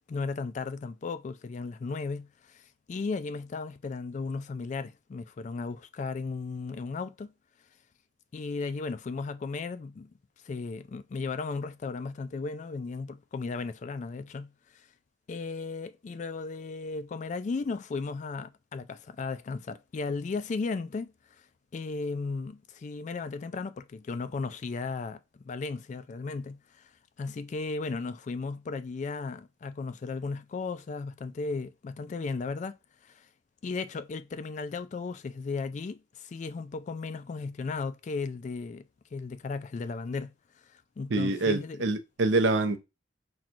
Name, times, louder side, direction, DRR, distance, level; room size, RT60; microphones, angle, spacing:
voice 1, 0.1-7.3 8.3-10.1 10.4-14.9 15.3-21.1 21.7-26.9 27.2-32.7 33.0-33.3 33.6-38.9 39.1-40.3 40.6-41.8, left 4 dB, 40° left, 0.3 m, -35 dB
voice 2, 41.1-42.8, right 2 dB, 80° right, 0.6 m, -26 dB
5.8 x 2.3 x 2.5 m
head